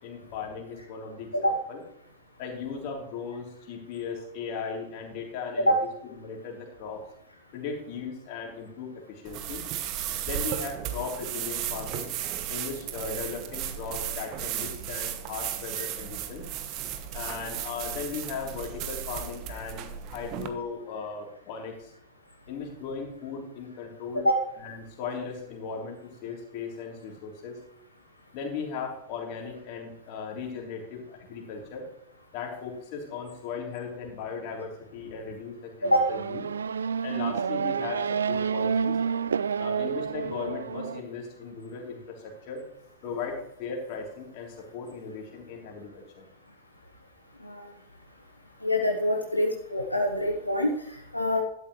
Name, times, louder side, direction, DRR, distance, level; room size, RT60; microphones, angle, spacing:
voice 1, 0.0-1.8 2.4-5.7 6.1-7.0 7.5-9.6 10.2-12.1 12.5-16.5 17.1-21.9 22.5-24.3 24.6-27.6 28.3-31.9 32.3-36.4 37.0-39.0 39.6-42.6 43.0-46.2, left 5 dB, 45° left, 0 dB, 3.5 m, -37 dB
sound 1, 9.2-20.5, right 10 dB, 40° right, 1.2 m, -35 dB
Race car auto racing / Accelerating revving vroom, 35.8-41.0, right 6 dB, 70° right, 0.3 m, -29 dB
voice 2, 48.6-51.4, equal, 85° left, 2 dB, 1.1 m, -25 dB
12.0 x 11.5 x 3.2 m, 0.77 s
figure-of-eight pair, 90°, 0 cm